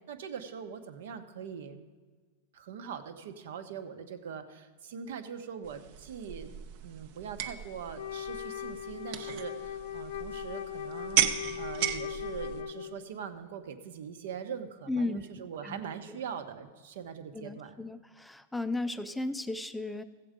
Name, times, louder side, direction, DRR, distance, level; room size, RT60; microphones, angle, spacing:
voice 1, 0.1-1.8 2.5-11.2 11.6-17.8, right 7 dB, 75° right, 9 dB, 1.0 m, -42 dB
sound 1, 5.6-12.6, right 10 dB, 50° right, 0.7 m, -35 dB
Wind instrument woodwind instrument, 7.9-13.1, left 9 dB, 75° left, 0.5 m, -39 dB
voice 2, 14.9-15.3 15.6-15.8 16.1-16.2 17.3-20.0, left 2 dB, 5° left, 10 dB, 0.4 m, -35 dB
15.0 x 7.8 x 5.1 m, 1.4 s
supercardioid pair, 155°, 0 cm